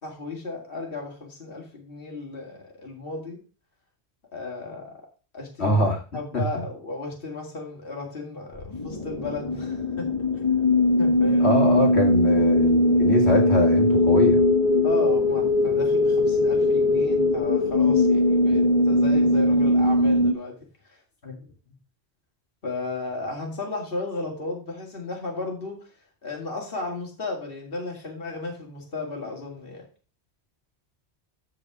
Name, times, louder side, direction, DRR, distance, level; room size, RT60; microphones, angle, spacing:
voice 1, 0.0-3.4 4.3-5.0 5.3-5.8 6.1-10.1 10.3-10.4 11.0-11.6 14.8-20.6 20.9-21.4 22.6-25.9 26.2-29.9, left 3 dB, 55° left, 0 dB, 2.5 m, -34 dB
voice 2, 5.6-6.0 6.3-6.4 11.4-14.4, left 2 dB, 75° left, -1 dB, 2.6 m, -23 dB
sound 1, 8.6-20.3, left 1 dB, 35° left, 1.2 m, -20 dB
14.0 x 4.7 x 4.8 m, 0.36 s
omnidirectional pair, 1.1 m